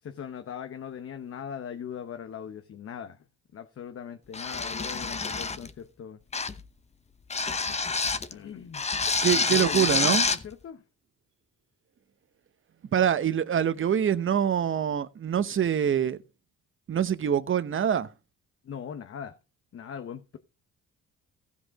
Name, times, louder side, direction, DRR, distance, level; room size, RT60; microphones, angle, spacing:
voice 1, 0.0-3.3 3.5-6.2 8.3-8.9 9.3-10.8 18.6-19.4 19.7-20.4, left 8 dB, 50° left, 0.9 m, -40 dB
sound 1, 4.3-5.7 6.3-6.7 7.3-8.3 8.7-10.4, left 4 dB, 20° left, 0.8 m, -27 dB
voice 2, 9.2-10.3 12.9-16.2 16.9-18.1, right 9 dB, 40° right, 0.9 m, -25 dB
15.0 x 5.2 x 4.7 m
cardioid pair, 90°, 30 cm